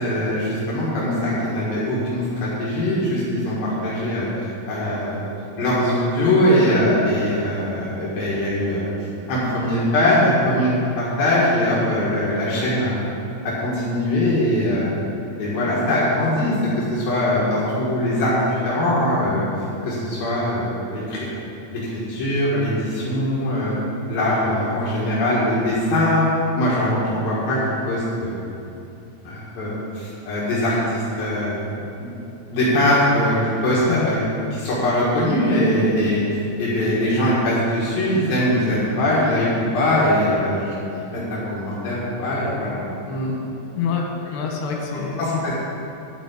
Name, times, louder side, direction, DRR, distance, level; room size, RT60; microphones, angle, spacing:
voice 1, 0.0-5.2 5.6-8.9 9.3-10.7 11.0-13.0 13.4-15.0 15.4-19.5 19.8-21.4 21.7-23.8 24.1-26.2 26.6-27.6 27.9-28.4 29.2-32.1 32.5-33.4 33.6-34.2 34.5-39.5 39.7-43.3 45.2-45.5, left 1 dB, 70° left, -7 dB, 3.3 m, -21 dB
voice 2, 43.7-44.1 44.3-45.2, left 6 dB, 90° left, 0 dB, 3.4 m, -25 dB
12.0 x 5.0 x 8.2 m, 2.9 s
omnidirectional pair, 4.5 m